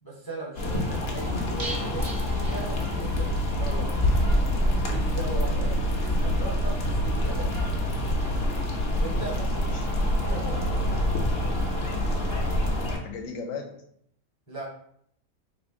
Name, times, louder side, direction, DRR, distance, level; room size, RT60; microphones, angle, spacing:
voice 1, 0.0-4.1 4.8-5.7 6.0-7.8 9.0-9.3 10.2-12.0 14.5-14.6, right 2 dB, 30° left, -5 dB, 0.4 m, -39 dB
sound 1, 0.6-13.0, left 1 dB, 55° left, 0.7 m, -26 dB
sound 2, 1.6-3.4 3.7-3.8 4.1-4.2, right 2 dB, 55° right, 0.4 m, -39 dB
sound 3, 3.1-11.3, right 3 dB, 85° right, 1.1 m, -33 dB
voice 2, 5.5-5.8 9.2-9.9 10.8-11.1 13.0-13.8, left 5 dB, 70° left, 4 dB, 1.0 m, -38 dB
3.1 x 2.5 x 3.6 m, 0.69 s
omnidirectional pair, 1.5 m